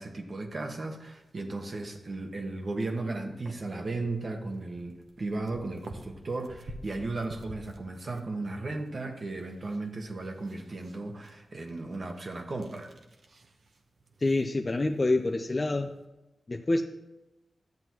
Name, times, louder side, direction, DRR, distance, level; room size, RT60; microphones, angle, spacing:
voice 1, 0.0-12.9, right 2 dB, 55° right, 3 dB, 1.3 m, -35 dB
sound 1, 0.7-16.0, right 2 dB, 70° right, 1.0 m, -53 dB
voice 2, 14.2-16.0 16.5-16.8, left 2 dB, 40° left, 3 dB, 0.6 m, -27 dB
12.0 x 7.7 x 3.0 m, 0.97 s
cardioid pair, 45°, 0 cm